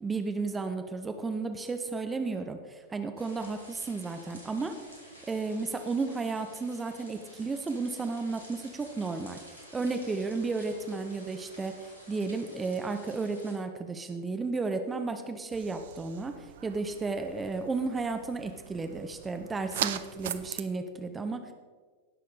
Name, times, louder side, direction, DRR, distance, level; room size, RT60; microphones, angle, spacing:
voice 1, 0.0-4.7 5.3-21.5, right 3 dB, 15° right, 7 dB, 0.7 m, -33 dB
sound 1, 3.2-13.6, equal, 75° left, 2.6 m, -52 dB
sound 2, 15.5-20.6, right 11 dB, 55° right, 0.5 m, -39 dB
17.5 x 6.5 x 4.0 m, 1.5 s
figure-of-eight pair, 90°, 0 cm